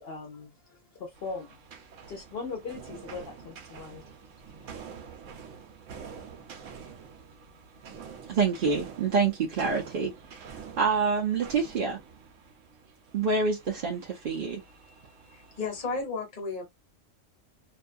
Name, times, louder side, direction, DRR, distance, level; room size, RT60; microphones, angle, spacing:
voice 1, 0.0-1.6 2.1-4.1 4.6-4.7, left 4 dB, 60° left, 0.7 m, -40 dB
sound 1, 1.1-16.0, right 6 dB, 80° right, 1.0 m, -47 dB
voice 2, 8.3-10.4 10.8-12.0 13.1-14.6, right 5 dB, 55° right, 0.6 m, -27 dB
voice 3, 15.3-16.6, left 4 dB, 40° left, 1.1 m, -33 dB
2.6 x 2.2 x 2.4 m
omnidirectional pair, 1.3 m